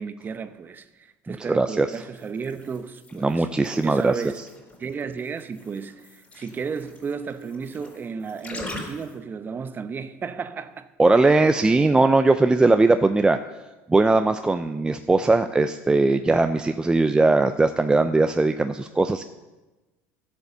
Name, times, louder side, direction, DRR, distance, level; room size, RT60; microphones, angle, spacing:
voice 1, 0.0-3.5 3.8-4.4 4.8-10.9, right 5 dB, 30° right, 0.8 m, -33 dB
voice 2, 1.3-1.9 3.2-4.1 11.0-13.4 13.9-19.2, right 3 dB, 10° right, 0.5 m, -19 dB
sound 1, 1.9-9.2, left 1 dB, 20° left, 4.4 m, -43 dB
12.5 x 8.1 x 6.7 m
supercardioid pair, 110°, 7 cm